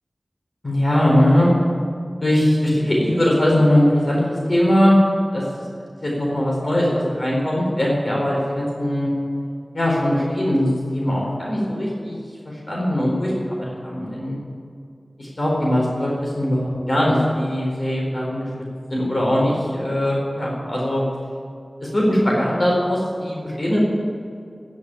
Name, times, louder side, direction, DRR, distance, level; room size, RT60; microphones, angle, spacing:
voice 1, 0.6-1.5 2.2-5.0 5.3-5.4 6.0-9.1 9.7-12.2 12.4-14.4 15.2-18.5 18.9-21.0 21.8-23.8, left 1 dB, 55° left, -4 dB, 4.4 m, -20 dB
10.5 x 10.5 x 9.2 m, 2.3 s
wide cardioid pair, 50°, 0 cm